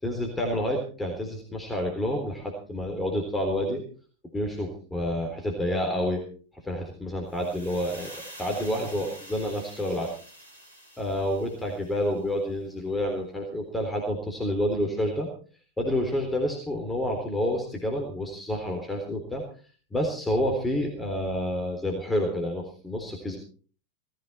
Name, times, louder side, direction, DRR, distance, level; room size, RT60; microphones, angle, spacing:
voice 1, 0.0-3.8 4.3-6.2 6.5-8.1 8.4-10.1 11.0-15.3 15.8-19.4 19.9-23.4, equal, 10° left, 2 dB, 3.7 m, -29 dB
sound 1, 7.3-12.3, right 1 dB, 80° right, 3.9 m, -47 dB
18.0 x 15.0 x 4.3 m, 0.41 s
figure-of-eight pair, 90°, 0 cm